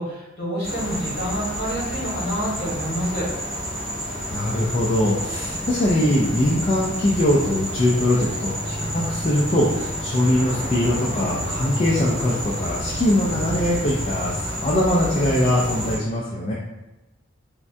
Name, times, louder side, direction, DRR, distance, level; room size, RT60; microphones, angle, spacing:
voice 1, 0.0-3.3, equal, 50° left, -7 dB, 1.3 m, -28 dB
sound 1, 0.6-16.0, equal, ahead, 1.1 m, -29 dB
voice 2, 4.3-16.5, left 1 dB, 30° left, -5 dB, 0.3 m, -22 dB
3.4 x 2.1 x 2.6 m, 1.0 s
head